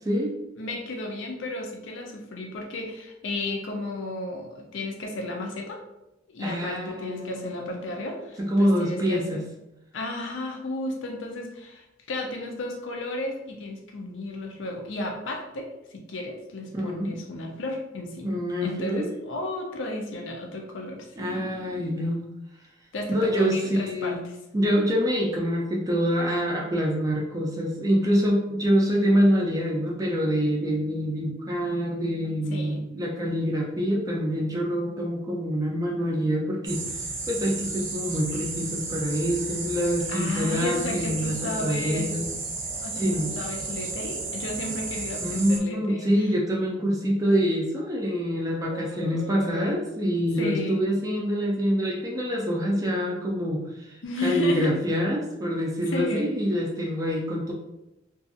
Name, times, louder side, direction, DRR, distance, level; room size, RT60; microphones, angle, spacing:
voice 1, 0.6-5.8 6.3-9.4 9.9-22.0 22.9-24.4 32.5-32.9 40.1-42.1 42.8-43.0 43.4-46.6 48.7-49.8 50.4-50.8 54.0-54.8 55.9-56.3, left 2 dB, 80° left, 1 dB, 0.5 m, -33 dB
voice 2, 6.4-7.7 8.5-9.4 16.7-17.1 18.2-19.1 21.2-22.2 23.1-24.2 24.5-36.8 37.3-42.3 43.0-43.3 45.2-57.5, equal, 20° right, -2 dB, 0.3 m, -26 dB
sound 1, 36.6-45.6, right 3 dB, 75° right, 0.6 m, -33 dB
2.6 x 2.3 x 2.5 m, 0.92 s
head